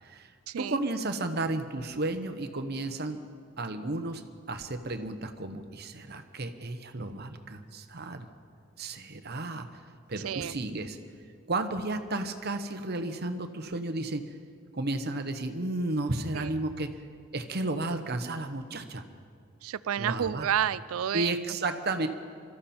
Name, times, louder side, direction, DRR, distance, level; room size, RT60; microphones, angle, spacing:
voice 1, 0.0-0.3 0.6-3.2 3.6-8.3 8.8-9.8 10.1-11.0 11.5-14.3 14.7-17.0 17.3-19.0 20.0-20.5 21.1-22.1, right 2 dB, 50° right, 8 dB, 1.0 m, -33 dB
voice 2, 19.6-21.3, right 9 dB, 90° right, 17 dB, 0.4 m, -30 dB
24.0 x 13.5 x 4.3 m, 2.1 s
head